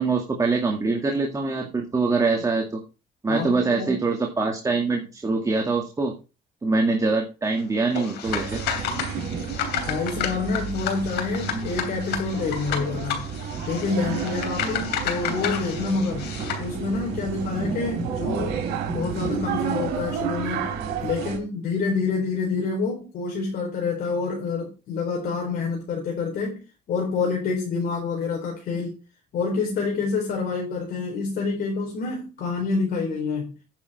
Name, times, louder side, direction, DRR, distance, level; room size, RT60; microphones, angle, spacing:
voice 1, 0.0-2.8 3.2-6.1 6.6-8.6, right 3 dB, 20° right, 2.2 m, -24 dB
voice 2, 3.3-3.9 9.9-13.2 13.6-16.3 16.6-18.6 18.9-20.7 21.0-26.6 26.9-29.0 29.3-33.5, left 4 dB, 60° left, 4.2 m, -27 dB
sound 1, 7.9-16.7, left 9 dB, 80° left, 3.1 m, -31 dB
sound 2, 8.2-21.4, right 6 dB, 90° right, 3.2 m, -31 dB
10.0 x 7.3 x 4.3 m
cardioid pair, 110°, 17 cm